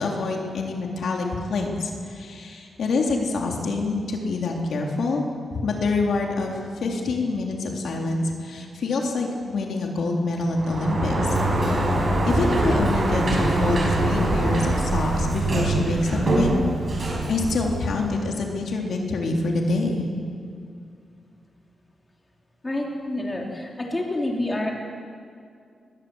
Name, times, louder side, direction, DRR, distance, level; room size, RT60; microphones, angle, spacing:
voice 1, 0.0-5.2 5.5-12.0 12.2-16.6 17.3-20.1, left 3 dB, 70° left, 0 dB, 3.3 m, -26 dB
Sliding door, 10.5-18.3, right 1 dB, 40° right, 6.3 m, -23 dB
voice 2, 22.6-24.7, left 1 dB, 20° left, -1 dB, 3.8 m, -28 dB
21.5 x 19.5 x 7.9 m, 2.3 s
wide cardioid pair, 115°, 0 cm